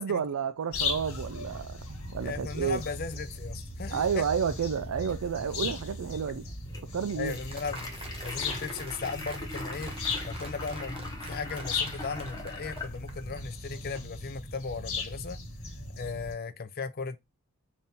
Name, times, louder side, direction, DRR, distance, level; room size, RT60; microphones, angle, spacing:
voice 1, 0.0-2.8 3.9-6.4 6.9-7.4, right 7 dB, 80° right, 0.4 m, -31 dB
sound 1, 0.7-16.3, left 3 dB, 75° left, 1.5 m, -37 dB
voice 2, 2.2-4.2 7.2-7.9 8.2-9.9 10.3-15.4 16.0-17.3, left 4 dB, 45° left, 0.5 m, -37 dB
sound 2, 4.7-14.2, left 2 dB, 15° left, 0.9 m, -44 dB
Applause, 7.5-13.4, right 3 dB, 25° right, 0.7 m, -46 dB
4.2 x 2.6 x 3.5 m
head